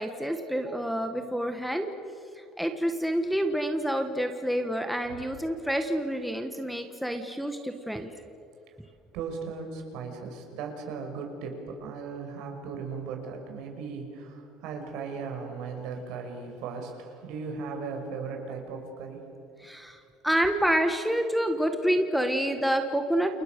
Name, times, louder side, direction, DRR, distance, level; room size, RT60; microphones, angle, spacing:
voice 1, 0.0-1.9 2.6-8.1 19.6-23.4, equal, ahead, 5 dB, 1.5 m, -28 dB
voice 2, 9.1-19.2, right 5 dB, 65° right, 3 dB, 6.4 m, -37 dB
29.5 x 29.5 x 6.8 m, 2.6 s
cardioid pair, 160°, 0 cm